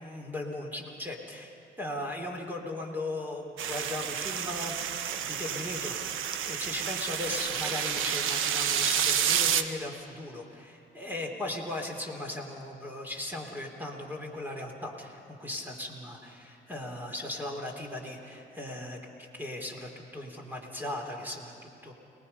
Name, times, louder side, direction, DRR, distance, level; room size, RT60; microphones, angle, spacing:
voice 1, 0.0-6.0 6.4-21.9, left 1 dB, 10° right, 1 dB, 3.5 m, -38 dB
sound 1, 3.6-9.6, right 9 dB, 85° right, 1.1 m, -30 dB
29.0 x 19.5 x 5.6 m, 2.8 s
cardioid pair, 90°, 20 cm